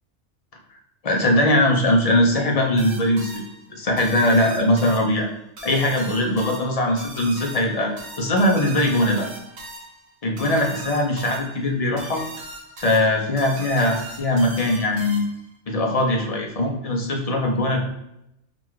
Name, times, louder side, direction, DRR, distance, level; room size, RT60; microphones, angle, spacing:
voice 1, 1.0-3.4 3.7-5.3 5.6-9.3 10.2-12.2 12.8-15.2 15.7-17.8, left 1 dB, 40° left, 0 dB, 0.6 m, -21 dB
sound 1, 2.8-15.5, right 2 dB, 65° right, 1.2 m, -40 dB
3.8 x 2.3 x 4.6 m, 0.84 s
omnidirectional pair, 1.2 m